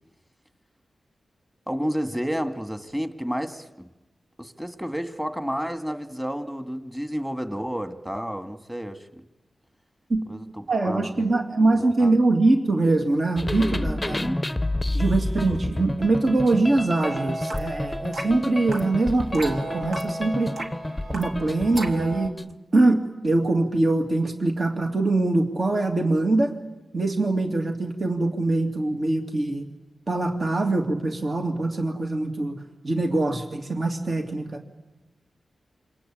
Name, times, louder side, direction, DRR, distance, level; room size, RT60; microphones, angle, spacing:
voice 1, 1.7-3.9 4.4-9.2 10.3-11.3 11.7-12.2 14.2-14.4, equal, 5° right, 2.0 m, -31 dB
voice 2, 10.7-14.3 14.9-20.5 21.1-22.3 22.7-26.5 26.9-29.7 30.1-32.5 32.8-34.6, right 2 dB, 50° right, 2.8 m, -23 dB
sound 1, 13.4-22.5, left 1 dB, 10° left, 0.9 m, -30 dB
sound 2, 17.0-22.3, right 2 dB, 70° right, 2.8 m, -35 dB
27.5 x 24.5 x 8.8 m
cardioid pair, 75°, 0 cm